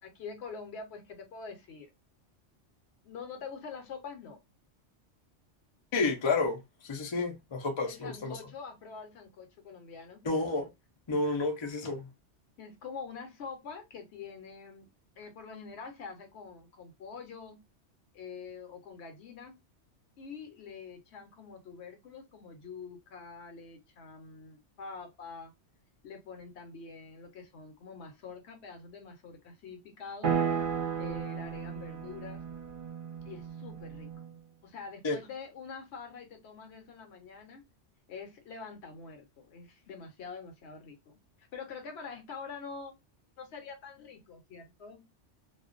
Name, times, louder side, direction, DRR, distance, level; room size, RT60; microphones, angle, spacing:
voice 1, 0.0-1.9 3.0-4.4 7.9-10.2 12.6-14.9 15.2-17.6 18.1-19.6 20.2-25.5 26.0-30.4 31.0-32.4 33.2-34.1 34.6-37.6 38.1-43.0 43.4-45.0, left 5 dB, 65° left, 0.9 m, -45 dB
voice 2, 5.9-6.6 6.8-8.4 10.2-10.7 11.1-12.1 35.0-35.2, left 3 dB, 45° left, 0.4 m, -30 dB
sound 1, 30.2-34.3, right 6 dB, 50° right, 0.8 m, -34 dB
2.4 x 2.1 x 2.4 m
omnidirectional pair, 1.2 m